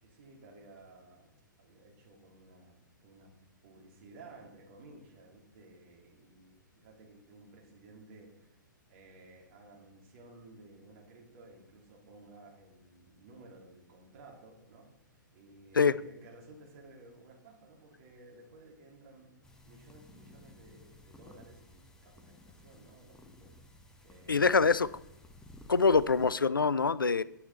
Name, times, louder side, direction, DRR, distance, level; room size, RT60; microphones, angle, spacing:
voice 1, 0.0-1.3 1.6-2.8 3.0-3.3 3.6-8.6 8.9-19.3 19.6-23.5 24.0-24.8, right 2 dB, 40° right, 0 dB, 2.9 m, -55 dB
sound 1, 19.4-26.4, left 2 dB, 5° left, 0.8 m, -55 dB
voice 2, 24.3-24.9 25.7-27.2, left 5 dB, 80° left, 18 dB, 0.4 m, -24 dB
10.0 x 7.8 x 4.1 m, 0.88 s
figure-of-eight pair, 115°, 11 cm